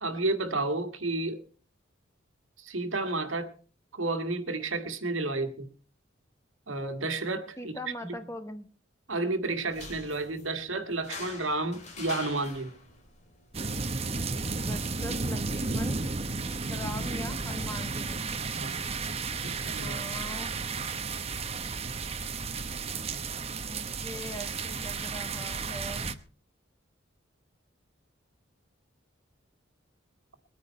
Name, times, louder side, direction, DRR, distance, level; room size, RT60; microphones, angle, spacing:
voice 1, 0.0-1.4 2.6-3.5 3.9-5.7 6.7-7.7 8.0-8.1 9.1-12.7 18.5-18.8 19.4-20.0, right 2 dB, 85° right, 8 dB, 2.0 m, -31 dB
voice 2, 7.6-8.7 14.5-16.0 16.7-18.2 19.8-20.6 23.6-26.2, left 1 dB, 15° left, 8 dB, 1.3 m, -41 dB
sound 1, 9.6-16.6, left 3 dB, 35° left, 3.2 m, -47 dB
sound 2, 13.5-26.1, right 4 dB, 30° right, 0.9 m, -33 dB
22.0 x 9.5 x 4.3 m, 0.39 s
head